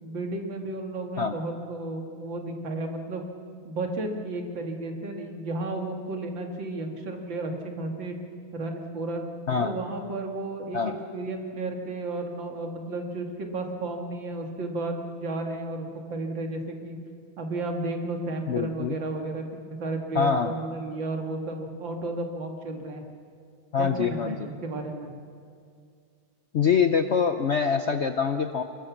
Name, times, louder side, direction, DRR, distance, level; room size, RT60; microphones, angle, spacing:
voice 1, 0.0-3.2 3.6-8.2 8.5-9.2 9.6-10.8 11.1-17.0 17.4-23.0 23.8-25.1, right 2 dB, 65° right, 3 dB, 2.8 m, -33 dB
voice 2, 9.5-9.8 10.7-11.0 18.5-19.0 20.1-20.5 23.7-24.5 26.5-28.6, left 6 dB, 80° left, 7 dB, 0.6 m, -24 dB
25.0 x 20.5 x 7.3 m, 2.3 s
omnidirectional pair, 2.3 m